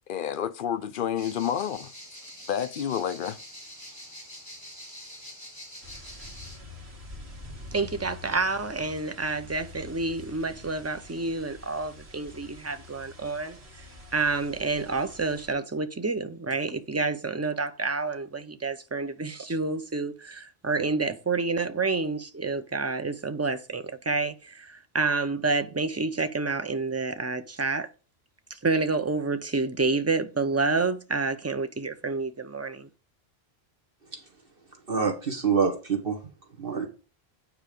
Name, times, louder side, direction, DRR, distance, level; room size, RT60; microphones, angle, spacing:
voice 1, 0.1-1.9 2.5-3.4, left 9 dB, 60° left, 0.7 m, -29 dB
sound 1, 1.2-6.6, equal, 15° left, 3.3 m, -45 dB
sound 2, 5.8-15.5, left 2 dB, 80° right, 2.1 m, -46 dB
voice 2, 7.7-13.6 14.1-27.9 28.5-32.9, right 3 dB, 20° right, 0.5 m, -29 dB
voice 3, 34.9-36.2 36.6-36.9, right 6 dB, 60° right, 1.7 m, -26 dB
9.0 x 4.7 x 5.0 m
omnidirectional pair, 1.1 m